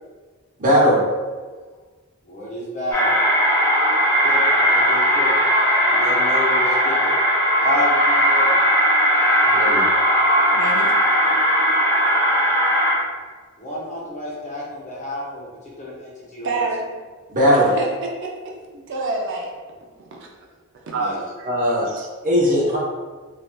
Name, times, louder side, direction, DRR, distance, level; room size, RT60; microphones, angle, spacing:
voice 1, 0.6-1.0 9.4-9.8 17.3-17.7 21.5-21.9 22.2-22.8, equal, 40° right, -6 dB, 0.8 m, -18 dB
voice 2, 2.2-3.2 4.2-5.3 5.9-7.1 7.6-8.6 13.6-15.5 15.8-16.6 20.9-21.2, left 1 dB, 35° left, -7 dB, 1.0 m, -29 dB
sound 1, 2.9-13.0, equal, 15° left, 0.6 m, -18 dB
voice 3, 10.5-10.9 16.4-17.0 17.5-17.9 18.2-18.3 18.7-19.5 20.0-20.3 20.9-21.1 21.4-21.5 21.9-22.1, right 3 dB, 60° right, 0 dB, 0.4 m, -28 dB
3.2 x 2.6 x 2.3 m, 1.4 s
head